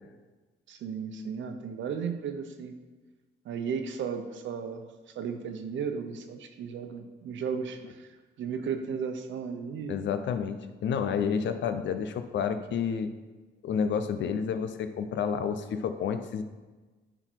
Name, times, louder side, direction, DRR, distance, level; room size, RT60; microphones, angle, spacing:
voice 1, 0.7-2.7 3.4-4.8 5.1-8.1 8.4-10.0, right 6 dB, 70° right, 6 dB, 0.9 m, -35 dB
voice 2, 9.9-13.1 13.6-16.4, left 7 dB, 65° left, 9 dB, 0.7 m, -30 dB
10.0 x 4.0 x 4.6 m, 1.3 s
cardioid pair, 90°, 20 cm